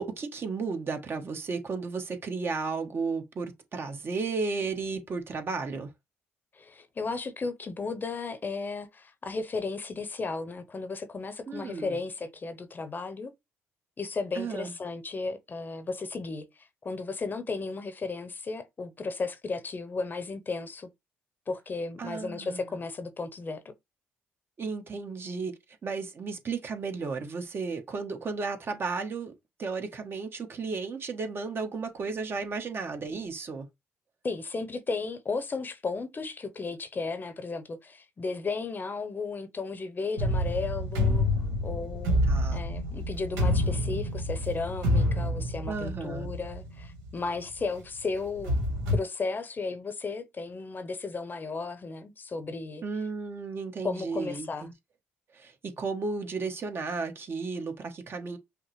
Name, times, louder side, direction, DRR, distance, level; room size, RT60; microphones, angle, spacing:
voice 1, 0.0-5.9 11.5-12.0 14.3-14.7 22.0-22.7 24.6-25.5 25.8-29.3 29.6-33.7 42.2-42.6 45.7-46.3 52.8-54.7 55.3-58.4, right 4 dB, 45° right, 1.0 m, -34 dB
voice 2, 6.5-13.3 14.0-16.4 16.8-20.9 21.5-23.7 34.2-41.3 41.6-48.6 48.9-52.8 53.8-54.7, left 4 dB, 35° left, 0.7 m, -34 dB
sound 1, 40.2-47.1 47.6-47.7 48.3-49.0, left 1 dB, 85° right, 1.2 m, -28 dB
5.5 x 2.1 x 3.1 m
supercardioid pair, 60°, 5 cm